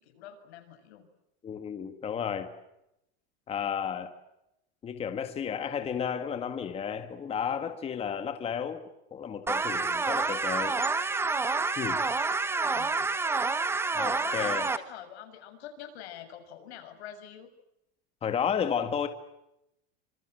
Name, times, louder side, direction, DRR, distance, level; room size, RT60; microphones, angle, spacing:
voice 1, 0.0-1.0 12.6-13.1 14.1-17.5, left 10 dB, 80° left, 7 dB, 6.9 m, -45 dB
voice 2, 1.4-2.5 3.5-4.1 4.8-8.8 9.1-10.8 11.7-12.0 13.9-14.7 18.2-19.1, left 7 dB, 20° left, 8 dB, 1.8 m, -32 dB
sound 1, 9.5-14.8, right 4 dB, 5° right, 1.3 m, -28 dB
27.0 x 26.0 x 7.7 m, 0.85 s
supercardioid pair, 165°, 32 cm